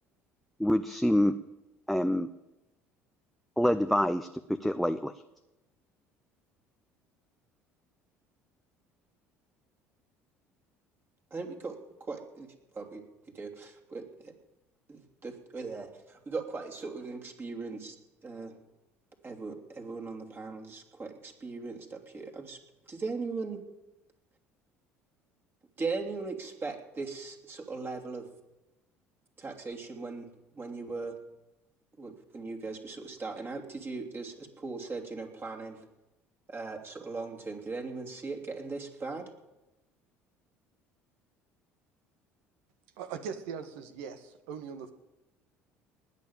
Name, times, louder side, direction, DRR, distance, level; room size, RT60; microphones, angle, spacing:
voice 1, 0.6-1.3 1.9-2.3 3.6-5.1, equal, ahead, 8 dB, 0.7 m, -26 dB
voice 2, 11.3-12.5 12.7-13.0 13.3-14.3 14.9-17.9 18.2-18.6 19.2-22.6 22.9-23.6 25.8-28.2 29.4-30.3 30.5-31.1 32.0-35.8 36.5-39.2, right 4 dB, 30° right, 1 dB, 3.0 m, -39 dB
voice 3, 43.0-44.9, right 6 dB, 70° right, 9 dB, 1.4 m, -40 dB
19.5 x 6.8 x 8.9 m, 1.0 s
hypercardioid pair, 60°, 7 cm